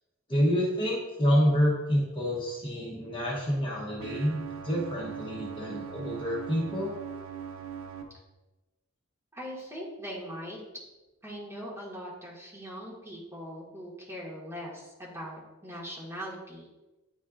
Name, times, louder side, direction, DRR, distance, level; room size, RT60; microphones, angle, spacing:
voice 1, 0.3-6.9, equal, 25° left, -4 dB, 1.0 m, -28 dB
sound 1, 4.0-8.0, right 8 dB, 75° right, 0.7 m, -40 dB
voice 2, 9.3-10.6 11.2-16.7, equal, 15° right, -5 dB, 1.6 m, -41 dB
9.5 x 4.2 x 2.4 m, 1.1 s
head